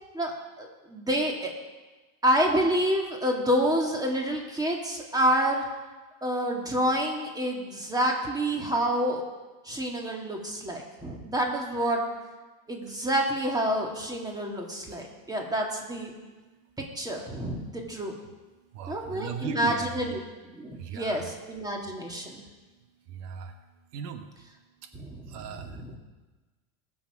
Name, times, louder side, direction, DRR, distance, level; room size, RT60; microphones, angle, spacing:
voice 1, 0.1-1.5 2.2-5.6 6.2-9.2 9.6-12.0 12.7-16.1 17.0-18.2 18.9-20.2 20.5-22.4 24.9-26.0, equal, 10° right, 0 dB, 2.1 m, -28 dB
voice 2, 18.7-19.9 20.8-21.3 23.1-23.5 23.9-24.3 24.8-24.9 25.3-26.0, right 8 dB, 80° right, 7 dB, 1.4 m, -38 dB
20.5 x 7.1 x 4.9 m, 1.2 s
supercardioid pair, 130°, 47 cm